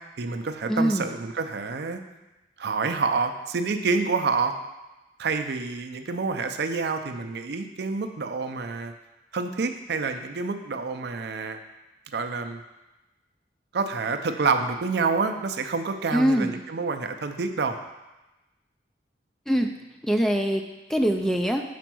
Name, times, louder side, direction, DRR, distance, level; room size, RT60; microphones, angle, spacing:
voice 1, 0.2-2.0 2.6-4.5 5.2-8.9 9.3-11.6 12.1-12.6 13.7-17.8, right 4 dB, 60° right, 7 dB, 0.5 m, -28 dB
voice 2, 0.7-1.1 16.1-16.6 19.5-19.7 20.0-20.6 20.9-21.6, equal, ahead, 4 dB, 0.4 m, -23 dB
5.1 x 4.5 x 6.0 m, 1.0 s
head